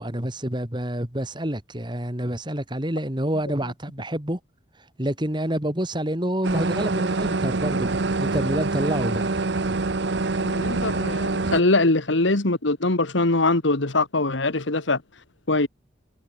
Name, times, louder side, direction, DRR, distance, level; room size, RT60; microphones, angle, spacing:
voice 1, 0.0-4.4 5.0-9.4, right 1 dB, 25° right, 2.9 m, -28 dB
sound 1, 6.4-11.6, right 3 dB, 65° right, 1.0 m, -25 dB
voice 2, 10.4-15.0 15.5-15.7, left 2 dB, 80° left, 1.8 m, -22 dB
head